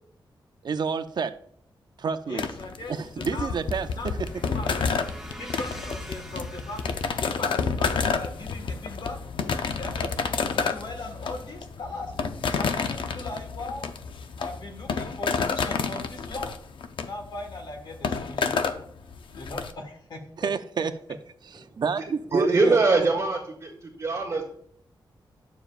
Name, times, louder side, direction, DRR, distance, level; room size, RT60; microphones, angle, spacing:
voice 1, 0.6-1.3 2.0-2.5 2.9-4.2 20.4-20.9 21.5-22.8, right 5 dB, 60° right, 11 dB, 0.5 m, -29 dB
voice 2, 2.3-4.1 4.5-4.7 5.4-9.2 9.7-12.2 12.5-13.9 14.4-16.5 17.0-18.6 19.3-20.5, left 2 dB, 65° left, 4 dB, 1.5 m, -39 dB
sound 1, 2.4-19.7, left 5 dB, 80° left, 0.6 m, -29 dB
sound 2, 3.1-11.0, right 1 dB, 5° right, 0.8 m, -47 dB
voice 3, 22.3-24.4, right 3 dB, 35° right, -5 dB, 1.7 m, -23 dB
10.0 x 7.0 x 2.4 m, 0.64 s
wide cardioid pair, 140°, 8 cm